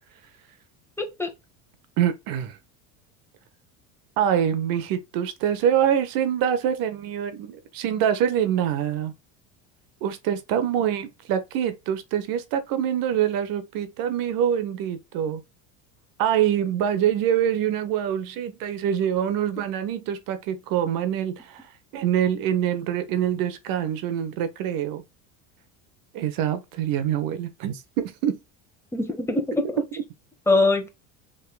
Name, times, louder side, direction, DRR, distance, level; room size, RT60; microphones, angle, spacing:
voice 1, 1.0-1.3 28.9-29.8 30.5-30.9, left 2 dB, 5° left, 1.3 m, -23 dB
voice 2, 2.0-2.6 4.2-9.1 10.0-15.4 16.2-25.0 26.1-28.4, right 9 dB, 60° right, 1.0 m, -25 dB
5.3 x 3.7 x 2.2 m
supercardioid pair, 105°, 38 cm